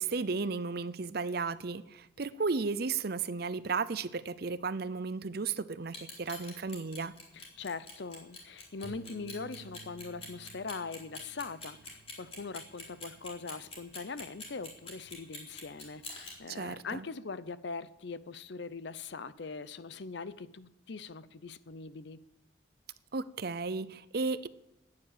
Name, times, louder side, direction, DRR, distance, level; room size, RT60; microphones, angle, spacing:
voice 1, 0.0-7.1 16.5-17.0 23.1-24.5, right 4 dB, 50° right, 0.6 m, -34 dB
Clock, 5.8-16.3, left 3 dB, 30° left, 4.0 m, -45 dB
voice 2, 7.3-22.2, left 4 dB, 60° left, 0.6 m, -42 dB
Bass guitar, 8.8-13.3 13.7-15.1, right 4 dB, 10° left, 1.7 m, -55 dB
14.5 x 9.6 x 8.7 m
head